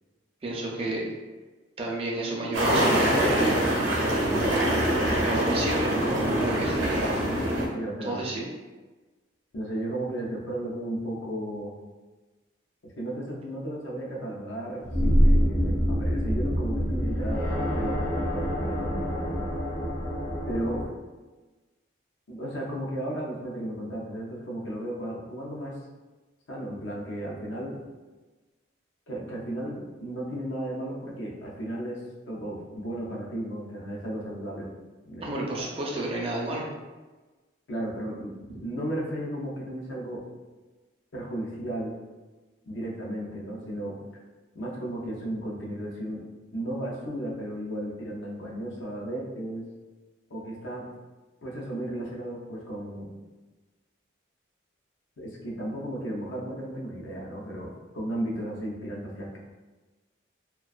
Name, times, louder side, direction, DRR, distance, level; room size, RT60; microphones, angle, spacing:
voice 1, 0.4-1.1 1.8-3.8 4.4-4.7 5.1-6.8 8.1-8.4 35.2-36.7, right 2 dB, 30° right, -3 dB, 0.4 m, -31 dB
sound 1, 2.5-7.7, right 1 dB, 90° right, 0.5 m, -24 dB
voice 2, 7.7-8.2 9.5-11.7 12.8-19.5 20.5-20.8 22.3-25.8 26.5-27.8 29.1-32.0 32.3-34.7 35.0-35.3 37.7-38.3 38.6-40.2 41.1-41.9 42.6-44.0 44.5-46.2 46.5-49.7 50.3-50.9 51.4-53.1 55.2-59.4, right 1 dB, 80° left, -2 dB, 0.6 m, -34 dB
sound 2, 14.8-20.9, equal, 40° left, 0.6 m, -25 dB
2.4 x 2.2 x 2.4 m, 1.2 s
head